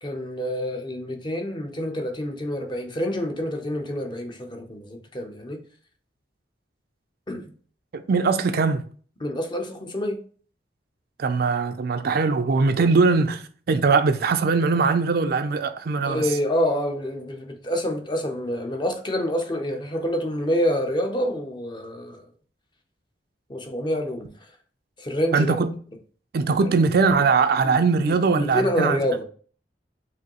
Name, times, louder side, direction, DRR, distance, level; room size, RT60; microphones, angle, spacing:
voice 1, 0.0-5.6 7.3-7.5 9.2-10.2 12.8-12.9 16.0-22.2 23.5-24.3 25.0-25.6 26.6-26.7 28.1-29.2, equal, 25° left, 0.6 m, -27 dB
voice 2, 7.9-8.8 11.2-16.2 25.3-25.7 26.3-29.0, right 4 dB, 60° right, 0.4 m, -21 dB
4.9 x 2.7 x 2.9 m
head